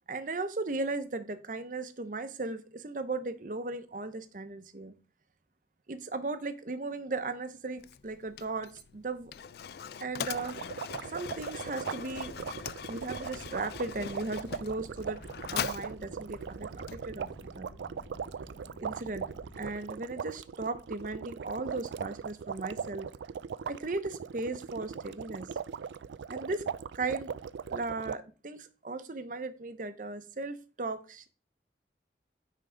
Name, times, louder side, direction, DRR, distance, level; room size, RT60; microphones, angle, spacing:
voice 1, 0.1-4.9 5.9-9.3 10.0-10.6 11.1-12.3 12.9-17.7 18.8-19.3 19.6-23.1 23.7-25.5 26.3-26.6 26.9-27.3 27.7-31.3, right 3 dB, 45° right, 11 dB, 0.7 m, -37 dB
Mechanisms, 7.8-17.5, left 8 dB, 60° left, 0.4 m, -42 dB
sound 1, 10.3-28.2, right 6 dB, 85° right, 0.3 m, -39 dB
sound 2, 12.1-19.7, equal, 90° left, 2.3 m, -51 dB
9.1 x 3.7 x 5.0 m, 0.35 s
head